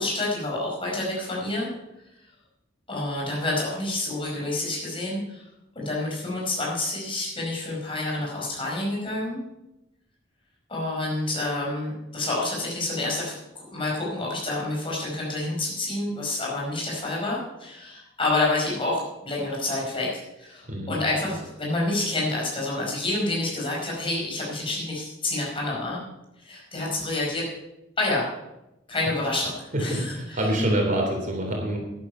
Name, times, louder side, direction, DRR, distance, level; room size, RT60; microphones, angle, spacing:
voice 1, 0.0-1.7 2.9-5.4 5.7-9.4 10.7-26.0 26.4-27.4 28.0-28.3 28.9-30.5, left 2 dB, 30° left, -3 dB, 5.1 m, -28 dB
voice 2, 29.7-31.8, right 1 dB, 45° right, 1 dB, 3.1 m, -26 dB
11.5 x 10.5 x 5.5 m, 0.91 s
head